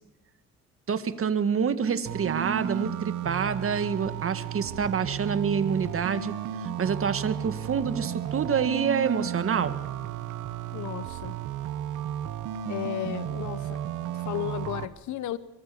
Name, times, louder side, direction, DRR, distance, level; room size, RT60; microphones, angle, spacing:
voice 1, 0.9-9.8, right 6 dB, 45° right, 1.9 m, -27 dB
sound 1, 2.1-14.9, right 11 dB, 85° right, 1.2 m, -33 dB
voice 2, 10.7-11.4 12.7-13.8 14.1-15.4, left 13 dB, 75° left, 1.0 m, -34 dB
25.0 x 23.0 x 7.1 m
cardioid pair, 90°, 30 cm